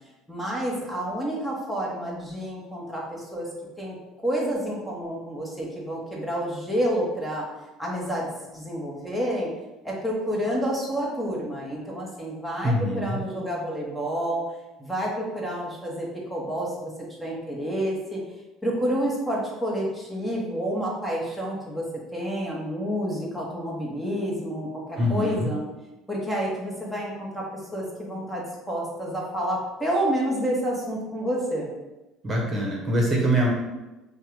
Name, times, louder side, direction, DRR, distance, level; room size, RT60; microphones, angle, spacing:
voice 1, 0.3-3.5 3.8-3.9 4.2-7.5 7.8-8.3 8.5-9.5 9.8-14.4 14.8-16.9 17.2-18.2 18.6-21.8 22.1-25.6 26.1-27.5 27.7-31.7, equal, ahead, -4 dB, 1.4 m, -29 dB
voice 2, 12.6-13.2 25.0-25.5 32.2-33.5, equal, 30° right, -2 dB, 1.3 m, -24 dB
4.5 x 2.5 x 4.7 m, 1.1 s
hypercardioid pair, 65°, 0 cm